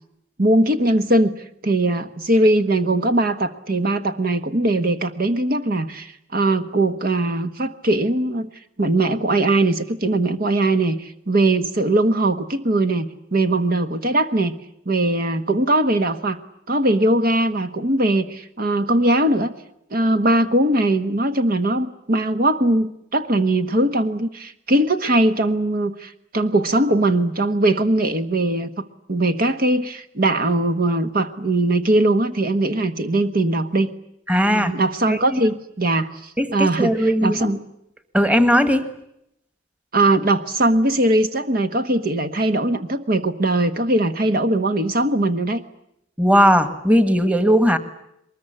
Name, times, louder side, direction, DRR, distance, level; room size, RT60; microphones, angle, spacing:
voice 1, 0.4-1.3 1.6-8.5 8.8-14.6 14.9-16.4 16.7-19.5 19.9-33.9 34.5-37.6 39.9-45.6, right 1 dB, 50° right, 9 dB, 1.3 m, -20 dB
voice 2, 34.3-34.7 35.1-35.4 36.4-37.6 38.1-38.9 46.2-47.8, equal, 5° right, 11 dB, 1.6 m, -18 dB
23.5 x 21.0 x 10.0 m, 0.79 s
head